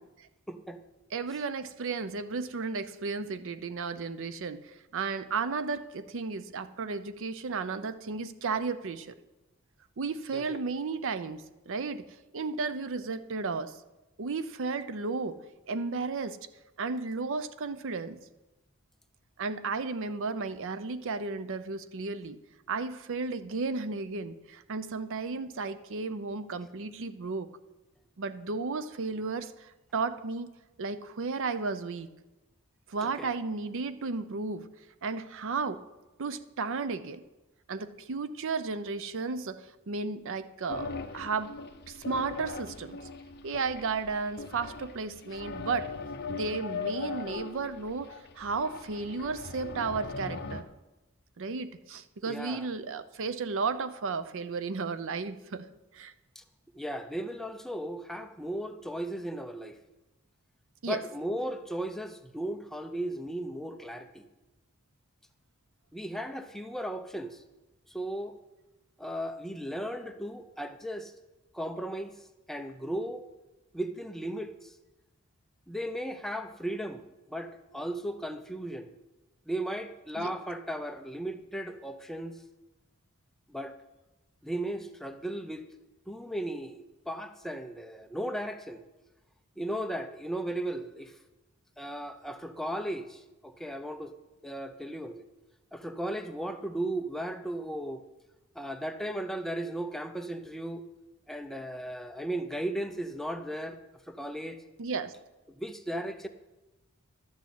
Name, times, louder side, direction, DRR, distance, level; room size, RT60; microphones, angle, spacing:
voice 1, 0.5-0.8 10.3-10.6 33.0-33.3 52.3-52.7 56.4-56.5 56.7-59.8 60.9-64.3 65.9-67.4 67.9-68.4 69.0-71.1 71.5-72.2 72.5-73.3 73.7-74.7 75.7-77.0 77.3-78.9 79.5-82.4 83.5-83.8 84.4-85.7 86.1-88.8 89.6-91.2 91.8-94.2 94.4-95.2 95.7-98.0 98.6-100.8 101.3-103.8 104.1-104.6 105.6-106.3, right 1 dB, ahead, 7 dB, 0.6 m, -36 dB
voice 2, 1.1-9.1 10.0-12.1 12.3-13.8 14.2-15.4 15.7-16.4 16.8-18.2 19.4-22.4 22.7-27.5 28.2-30.5 30.8-32.1 32.9-34.7 35.0-35.8 36.2-37.2 37.7-41.5 41.9-43.0 43.4-45.9 46.3-50.6 51.4-55.7 55.9-56.1 60.8-61.0 80.2-80.3 104.8-105.1, right 4 dB, 60° right, 13 dB, 0.6 m, -34 dB
sound 1, 40.7-50.6, left 4 dB, 50° left, 0.7 m, -40 dB
12.0 x 6.2 x 8.3 m, 1.0 s
head